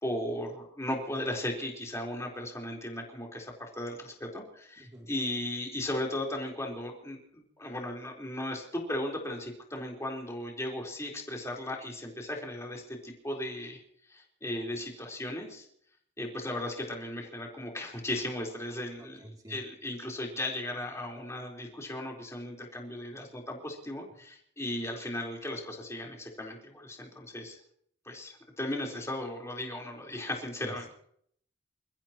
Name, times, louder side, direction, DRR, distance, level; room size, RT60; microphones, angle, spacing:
voice 1, 0.0-13.8 14.1-15.7 16.2-27.6 28.1-30.9, left 1 dB, 15° left, -1 dB, 4.3 m, -36 dB
voice 2, 4.8-5.1 19.0-19.6 30.6-30.9, right 1 dB, 20° right, 1 dB, 3.0 m, -48 dB
29.0 x 15.5 x 3.1 m, 0.66 s
head